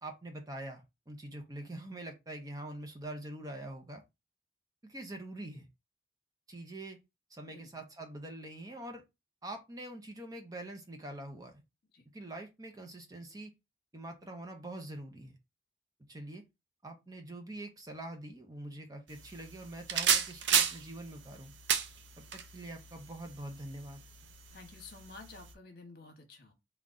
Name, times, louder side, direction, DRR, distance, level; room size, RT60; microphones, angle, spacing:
voice 1, 0.0-4.0 4.8-5.7 6.5-7.0 7.3-9.0 9.4-11.6 12.1-13.5 13.9-15.4 16.1-16.4 16.8-21.5 22.3-24.0, right 1 dB, 20° right, 0.5 m, -44 dB
sound 1, 19.1-25.5, right 8 dB, 85° right, 0.5 m, -34 dB
voice 2, 24.5-26.5, left 3 dB, 55° left, 1.1 m, -51 dB
3.8 x 2.3 x 3.6 m
head